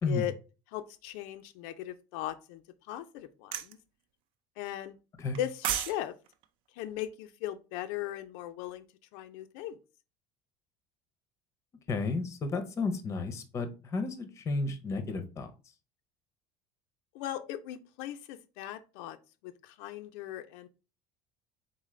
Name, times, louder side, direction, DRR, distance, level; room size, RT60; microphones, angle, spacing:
voice 1, 0.7-2.6 2.9-3.8 4.6-5.0 5.4-6.1 6.7-8.8 9.1-9.8 17.1-19.2 19.4-20.7, left 13 dB, 80° left, 8 dB, 0.4 m, -38 dB
sound 1, 3.5-3.7 5.3-6.0 6.3-6.4, right 10 dB, 50° right, 0.4 m, -31 dB
voice 2, 11.9-15.5, left 3 dB, 25° left, 8 dB, 0.6 m, -32 dB
4.0 x 3.7 x 3.1 m, 0.32 s
cardioid pair, 160°, 12 cm